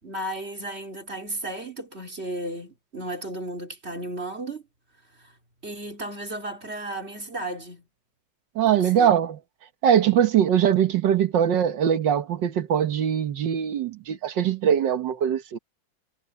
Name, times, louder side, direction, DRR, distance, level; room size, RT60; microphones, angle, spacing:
voice 1, 0.0-4.6 5.2-5.3 5.6-7.8 8.6-9.1, right 1 dB, 30° right, 3.8 m, -34 dB
voice 2, 8.6-9.4 9.8-15.6, right 9 dB, 65° right, 1.7 m, -22 dB
omnidirectional pair, 2.2 m